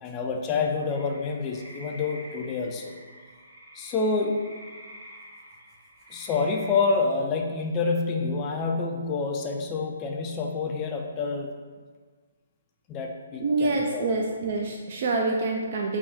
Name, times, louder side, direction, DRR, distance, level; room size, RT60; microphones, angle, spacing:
voice 1, 0.0-2.9 3.7-4.4 6.1-11.5 12.9-14.0, left 4 dB, 25° left, 2 dB, 0.3 m, -28 dB
sound 1, 0.9-6.7, equal, 65° right, 0.9 m, -47 dB
voice 2, 13.4-16.0, right 3 dB, 50° right, 0 dB, 0.4 m, -26 dB
3.5 x 2.2 x 4.0 m, 1.5 s
hypercardioid pair, 145°, 0 cm